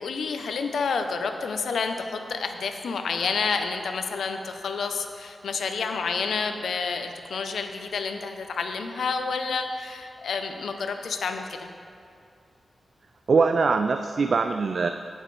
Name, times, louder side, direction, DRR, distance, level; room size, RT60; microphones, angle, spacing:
voice 1, 0.0-11.7, left 5 dB, 90° left, 6 dB, 0.7 m, -29 dB
voice 2, 13.3-14.9, right 4 dB, 60° right, 7 dB, 0.3 m, -22 dB
17.0 x 7.3 x 3.3 m, 2.4 s
cardioid pair, 70°, 0 cm